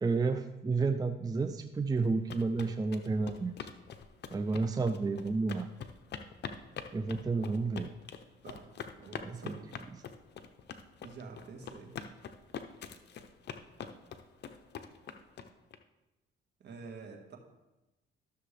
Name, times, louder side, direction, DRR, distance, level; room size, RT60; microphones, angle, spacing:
voice 1, 0.0-3.6 4.3-5.7 6.9-7.9 9.2-9.6 9.9-10.0, right 4 dB, 20° right, 8 dB, 0.5 m, -31 dB
sound 1, 2.0-15.8, left 7 dB, 60° left, 0.7 m, -44 dB
voice 2, 9.0-9.7 11.0-12.0 16.6-17.4, right 4 dB, 60° right, 1 dB, 1.7 m, -48 dB
13.0 x 6.7 x 3.4 m, 1.0 s
cardioid pair, 90°, 20 cm